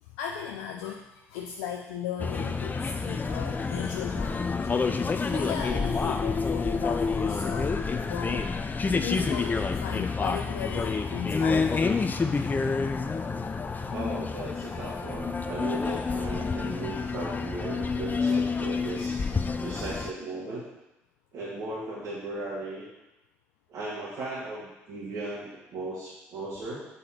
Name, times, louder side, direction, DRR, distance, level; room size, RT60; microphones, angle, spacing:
voice 1, 0.0-4.6 4.9-8.5 8.8-11.8, left 8 dB, 85° left, 1 dB, 0.4 m, -37 dB
sound 1, 2.2-20.1, left 4 dB, 30° left, 0.5 m, -28 dB
voice 2, 13.9-19.1 19.6-20.6 21.3-22.8 23.7-26.9, right 2 dB, 65° right, -9 dB, 1.6 m, -36 dB
6.4 x 4.1 x 4.3 m, 0.95 s
hypercardioid pair, 60°, 6 cm